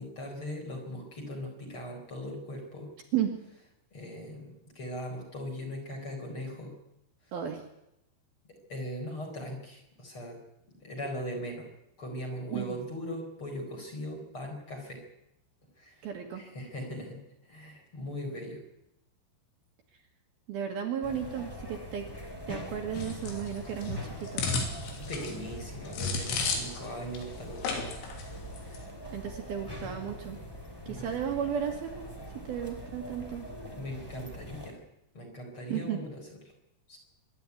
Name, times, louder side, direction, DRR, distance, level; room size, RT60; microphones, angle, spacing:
voice 1, 0.0-2.9 3.9-6.8 8.5-10.4 10.8-11.7 12.0-15.0 15.8-16.0 16.3-18.6 25.0-27.9 30.8-31.1 33.8-34.8 35.1-36.2 36.9-37.0, equal, 30° left, 1 dB, 4.9 m, -39 dB
voice 2, 7.3-7.7 12.5-12.8 16.0-16.4 20.5-22.1 22.5-24.7 28.7-28.8 29.1-30.4 30.9-32.1 32.3-33.5 35.7-36.0, right 9 dB, 60° right, 3 dB, 3.2 m, -34 dB
sound 1, 21.0-34.7, equal, 5° left, 2.1 m, -43 dB
sound 2, 23.0-26.9 27.2-27.3 27.6-28.2 28.5-28.8, left 4 dB, 80° left, 5.2 m, -33 dB
25.0 x 12.0 x 9.6 m, 0.84 s
omnidirectional pair, 5.5 m